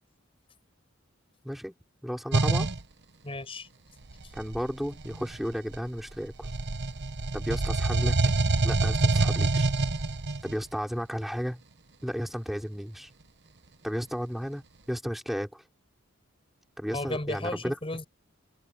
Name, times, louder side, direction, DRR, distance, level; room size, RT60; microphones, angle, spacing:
voice 1, 2.0-2.7 4.3-6.5 7.3-8.2 8.6-9.7 10.4-11.6 12.0-13.1 13.8-14.6 14.9-15.6 16.8-17.7, equal, ahead, 5.3 m, -33 dB
sound 1, 2.3-2.8 4.1-6.0 6.4-10.6, right 3 dB, 55° right, 1.3 m, -26 dB
voice 2, 3.2-3.7 16.9-18.0, left 2 dB, 30° left, 6.1 m, -34 dB
head